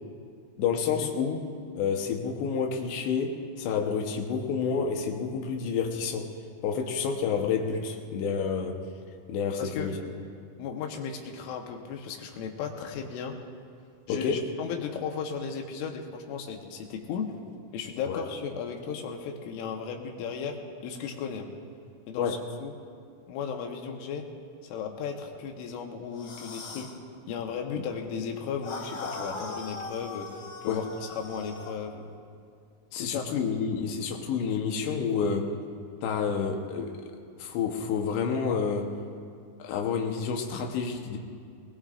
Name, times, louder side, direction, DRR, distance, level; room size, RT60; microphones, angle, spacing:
voice 1, 0.6-1.4 1.8-6.3 6.6-8.8 9.3-10.0 14.1-14.4 18.1-18.2 22.2-22.4 30.7-30.9 32.9-35.5 36.0-37.1 37.4-38.9 39.6-41.2, left 6 dB, 75° left, 2 dB, 3.0 m, -29 dB
voice 2, 9.6-9.9 10.6-13.4 14.1-17.3 17.7-20.6 20.8-21.5 22.1-22.7 23.3-24.2 24.6-26.9 27.3-30.3 30.6-30.9 31.2-32.1 33.0-33.3, left 6 dB, 90° left, 2 dB, 3.7 m, -35 dB
sound 1, 26.1-27.0 28.6-31.8, left 3 dB, 60° left, 2.7 m, -40 dB
21.0 x 20.0 x 2.5 m, 2.3 s
omnidirectional pair, 5.4 m